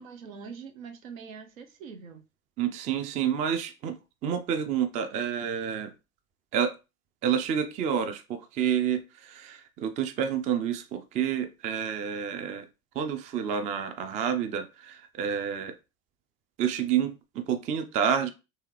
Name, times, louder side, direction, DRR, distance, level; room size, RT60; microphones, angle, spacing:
voice 1, 0.0-2.2, right 5 dB, 70° right, 0.7 m, -43 dB
voice 2, 2.6-4.0 4.2-5.9 6.5-6.7 7.2-12.7 13.0-15.7 16.6-18.3, right 8 dB, 20° right, 0.3 m, -29 dB
3.4 x 3.3 x 3.2 m
figure-of-eight pair, 65°, 42 cm